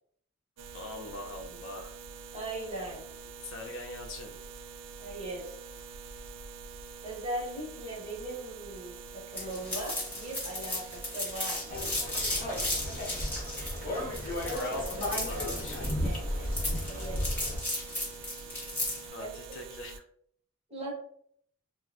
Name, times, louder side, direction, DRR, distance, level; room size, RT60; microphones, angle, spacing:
sound 1, 0.6-20.0, right 5 dB, 80° right, 0.3 m, -46 dB
voice 1, 0.7-2.0 3.4-4.3 12.8-13.8 14.8-15.9 19.1-20.0, left 2 dB, 60° left, 3 dB, 0.4 m, -43 dB
voice 2, 2.3-3.0 5.0-5.6 7.0-11.7 14.4-15.6 16.0-16.2 16.9-17.2 19.2-19.4 20.7-20.9, right 1 dB, 30° right, -4 dB, 1.1 m, -39 dB
sound 2, 9.4-19.1, left 1 dB, 10° left, 0.8 m, -35 dB
sound 3, 11.7-17.6, left 1 dB, 40° left, 0.8 m, -34 dB
3.2 x 2.2 x 2.3 m, 0.64 s
head